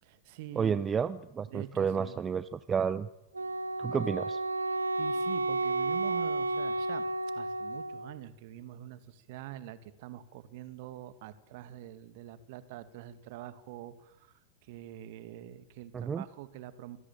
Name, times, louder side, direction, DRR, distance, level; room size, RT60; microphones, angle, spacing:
voice 1, 0.0-0.9 1.5-2.2 4.7-17.0, right 13 dB, 50° right, 13 dB, 2.1 m, -45 dB
voice 2, 0.6-3.1 3.8-4.4 15.9-16.2, right 6 dB, 20° right, 15 dB, 0.9 m, -31 dB
Wind instrument woodwind instrument, 3.3-8.2, right 2 dB, 80° right, 0.9 m, -32 dB
26.5 x 17.5 x 9.0 m, 0.87 s
figure-of-eight pair, 90°, 0 cm